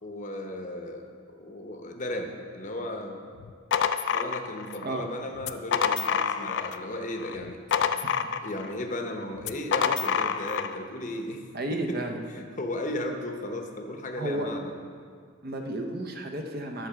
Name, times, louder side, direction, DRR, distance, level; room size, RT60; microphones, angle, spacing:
voice 1, 0.0-3.2 4.1-7.6 8.4-11.4 11.7-12.0 12.3-14.7, left 1 dB, 35° left, 3 dB, 0.8 m, -35 dB
sound 1, 3.4-4.9 5.4-6.9 7.2-8.7 9.4-10.8, left 7 dB, 55° left, 0.3 m, -27 dB
voice 2, 11.5-12.2 14.2-14.6 15.4-16.9, right 1 dB, 45° right, 3 dB, 0.7 m, -32 dB
10.0 x 4.7 x 6.7 m, 2.1 s
head